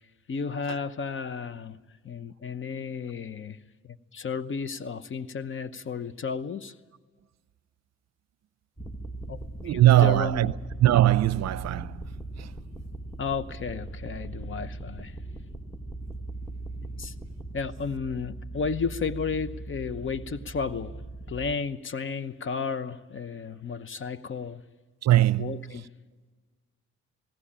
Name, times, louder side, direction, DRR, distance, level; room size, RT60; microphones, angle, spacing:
voice 1, 0.3-1.8 2.0-3.6 3.8-6.7 9.3-9.4 9.6-10.5 13.2-15.2 17.0-17.1 17.5-20.9 21.3-24.6 25.4-25.9, left 5 dB, 40° left, 0.9 m, -33 dB
sound 1, 8.8-21.6, right 2 dB, 5° left, 1.0 m, -39 dB
voice 2, 9.6-10.5 10.8-12.0 12.4-12.5 25.0-25.6, right 14 dB, 60° right, 0.7 m, -21 dB
20.0 x 17.0 x 8.8 m
cardioid pair, 90°, 30 cm